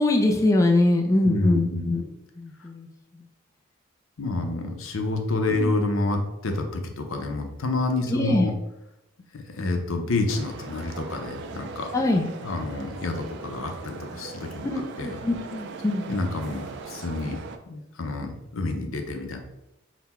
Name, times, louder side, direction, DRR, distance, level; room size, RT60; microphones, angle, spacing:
voice 1, 0.0-2.9 3.1-3.2 5.6-5.7 8.1-8.5 11.9-12.3 14.6-16.1, left 2 dB, 15° left, 1 dB, 0.4 m, -23 dB
voice 2, 1.2-1.9 4.2-8.5 9.3-11.9 12.4-14.7 15.0-15.2 16.1-17.4 17.7-19.4, left 2 dB, 85° left, 4 dB, 0.6 m, -28 dB
sound 1, 10.3-17.6, right 4 dB, 60° right, 0.3 m, -40 dB
4.0 x 2.1 x 4.2 m, 0.89 s
head